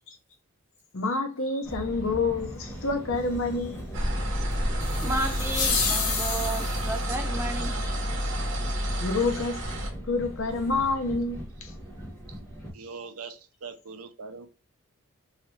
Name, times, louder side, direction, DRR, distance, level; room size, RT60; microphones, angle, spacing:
voice 1, 0.9-3.8 9.0-11.7, left 3 dB, 60° left, 0.6 m, -28 dB
sound 1, 1.6-12.7, equal, 15° left, 0.8 m, -39 dB
sound 2, 3.9-9.9, equal, 55° right, 0.9 m, -29 dB
sound 3, 4.8-7.0, left 5 dB, 85° left, 0.9 m, -29 dB
voice 2, 5.0-7.7, right 2 dB, 10° right, 0.5 m, -32 dB
voice 3, 12.7-14.5, right 5 dB, 75° right, 0.5 m, -42 dB
2.9 x 2.4 x 3.1 m
head